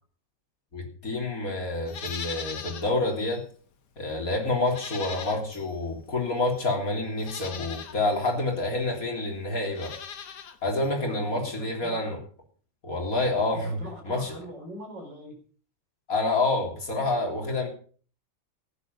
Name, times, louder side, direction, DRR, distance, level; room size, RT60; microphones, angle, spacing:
voice 1, 0.7-3.5 4.0-10.0 10.6-12.2 12.8-13.8 14.1-14.3 16.1-17.7, left 2 dB, 50° left, 1 dB, 3.8 m, -28 dB
Livestock farm animals working animals, 1.8-2.9 3.3-3.4 4.6-5.7 6.5-6.6 7.2-8.0 9.6-10.6 10.8-10.9, left 7 dB, 70° left, 1.8 m, -39 dB
voice 2, 4.9-5.3 11.0-12.2 13.5-15.4 17.3-17.4, right 1 dB, 85° right, 2 dB, 5.3 m, -42 dB
15.0 x 10.5 x 5.5 m, 0.43 s
omnidirectional pair, 1.9 m